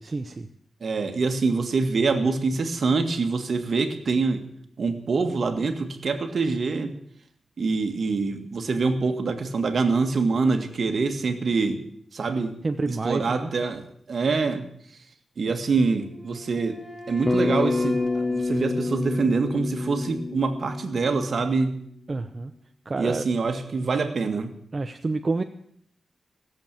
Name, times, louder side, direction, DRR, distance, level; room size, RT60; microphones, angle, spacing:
voice 1, 0.0-0.5 12.6-13.5 22.1-22.5 22.9-23.2 24.7-25.4, right 3 dB, 35° right, 6 dB, 0.8 m, -28 dB
voice 2, 0.8-4.4 4.8-6.9 7.6-11.8 12.1-12.6 12.9-13.8 14.1-14.7 15.4-16.8 17.1-21.7 23.0-24.5, right 4 dB, 60° right, 7 dB, 1.8 m, -25 dB
Wind instrument woodwind instrument, 16.0-19.9, equal, 5° left, 3.4 m, -41 dB
Bass guitar, 17.3-21.6, left 3 dB, 25° left, 0.8 m, -28 dB
17.0 x 7.7 x 8.8 m, 0.66 s
wide cardioid pair, 90°, 0 cm